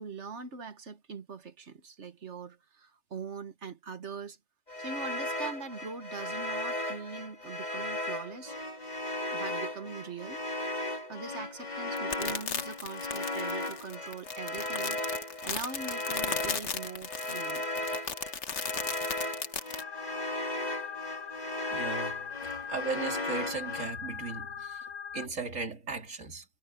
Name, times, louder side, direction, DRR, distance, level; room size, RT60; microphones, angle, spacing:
voice 1, 0.0-4.4 4.8-8.6 9.3-10.4 11.1-15.0 15.4-17.6, right 5 dB, 65° right, 1.6 m, -42 dB
sound 1, 4.7-23.9, left 1 dB, 35° left, 2.9 m, -36 dB
sound 2, 12.0-19.8, left 6 dB, 65° left, 1.5 m, -36 dB
sound 3, 19.8-25.3, left 7 dB, 85° left, 1.5 m, -40 dB
voice 2, 21.7-24.8 25.1-26.5, right 4 dB, 90° right, 2.7 m, -37 dB
omnidirectional pair, 1.3 m